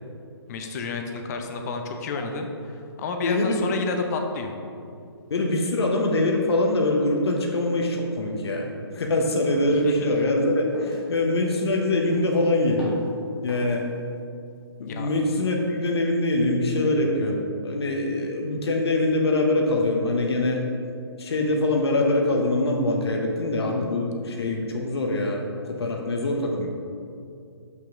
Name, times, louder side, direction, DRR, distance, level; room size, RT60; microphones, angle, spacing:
voice 1, 0.5-4.5 9.8-9.9 14.9-15.1, left 4 dB, 35° left, 4 dB, 0.8 m, -30 dB
voice 2, 3.2-3.6 5.3-8.7 8.9-13.0 13.4-13.8 14.8-20.6 21.2-25.4 25.7-26.7, left 2 dB, 65° left, 0 dB, 1.1 m, -23 dB
sound 1, 9.5-9.8 10.2-10.5 10.7-11.1 11.5-11.8 12.1-12.5 12.8-13.1 13.5-13.8, left 1 dB, 5° right, 1.8 m, -42 dB
7.5 x 6.0 x 3.8 m, 2.4 s
figure-of-eight pair, 140°, 14 cm